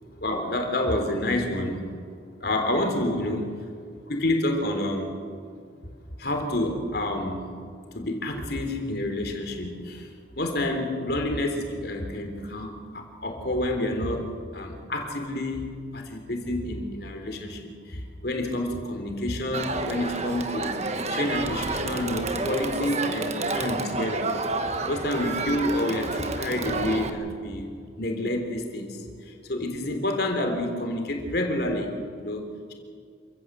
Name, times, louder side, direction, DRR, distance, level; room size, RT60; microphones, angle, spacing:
voice 1, 0.2-1.9 2.4-3.5 4.0-5.1 6.2-7.5 7.9-10.1 10.4-14.3 14.5-15.7 15.9-20.8 21.1-24.3 24.9-27.7 28.0-32.7, left 1 dB, 55° left, 4 dB, 3.6 m, -28 dB
Crowd, 19.5-27.1, right 3 dB, 35° right, 1.4 m, -30 dB
27.5 x 15.5 x 8.0 m, 2.2 s
head